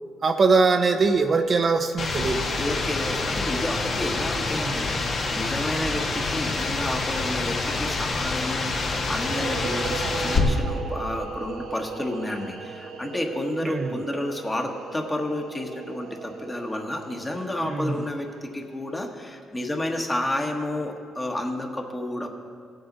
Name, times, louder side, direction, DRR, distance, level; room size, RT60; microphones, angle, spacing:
voice 1, 0.2-2.4 4.6-4.8 10.3-10.7 13.6-14.0 17.6-18.0, right 4 dB, 45° right, 6 dB, 0.6 m, -22 dB
sound 1, 2.0-10.4, left 3 dB, 55° left, 1.4 m, -27 dB
voice 2, 2.6-22.3, left 1 dB, 15° left, 2 dB, 1.4 m, -31 dB
sound 2, 9.1-18.6, right 6 dB, 85° right, 0.9 m, -37 dB
17.5 x 7.8 x 4.0 m, 2.2 s
cardioid pair, 90°, 0 cm